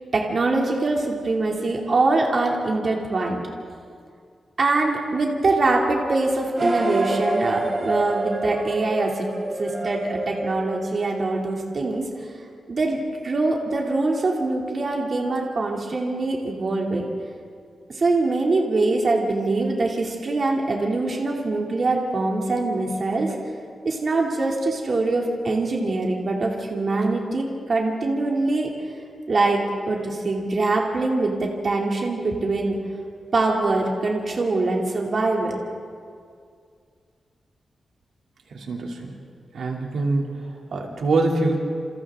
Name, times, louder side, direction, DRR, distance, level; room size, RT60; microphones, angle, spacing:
voice 1, 0.1-3.4 4.6-9.3 9.6-12.0 12.7-17.1 17.9-23.4 23.8-28.7 29.3-32.8 33.3-35.6, right 2 dB, 45° right, -1 dB, 2.8 m, -23 dB
sound 1, 6.5-11.4, right 1 dB, 30° right, 4.0 m, -27 dB
voice 2, 38.5-39.2 39.5-40.3 40.7-41.6, right 3 dB, 85° right, 0 dB, 2.9 m, -24 dB
29.5 x 28.5 x 3.8 m, 2.2 s
wide cardioid pair, 135°, 0 cm